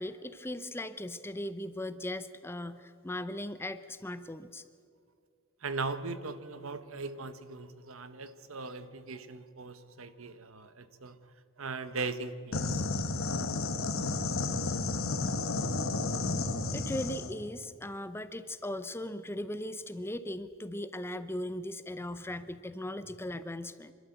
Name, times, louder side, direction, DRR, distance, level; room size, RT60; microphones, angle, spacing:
voice 1, 0.0-4.6 16.7-23.9, left 1 dB, 10° left, 12 dB, 0.6 m, -38 dB
voice 2, 5.6-11.2 11.6-12.8, right 3 dB, 75° right, 12 dB, 1.1 m, -39 dB
sound 1, 12.5-17.3, left 3 dB, 75° left, 1.4 m, -32 dB
26.5 x 12.5 x 8.1 m, 2.2 s
head